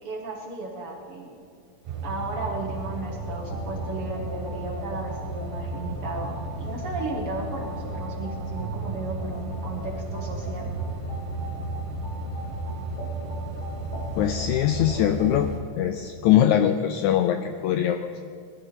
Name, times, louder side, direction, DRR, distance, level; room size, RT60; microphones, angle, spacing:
voice 1, 0.0-1.3 2.0-10.7 14.8-15.0, right 3 dB, 55° right, 0 dB, 1.7 m, -35 dB
sound 1, 1.8-15.6, right 1 dB, 75° right, 3.6 m, -34 dB
sound 2, 3.0-15.4, equal, 65° left, 4.0 m, -40 dB
voice 2, 14.2-15.5 15.8-18.2, left 11 dB, 85° left, 8 dB, 1.7 m, -22 dB
20.0 x 11.5 x 4.1 m, 2.3 s
omnidirectional pair, 3.8 m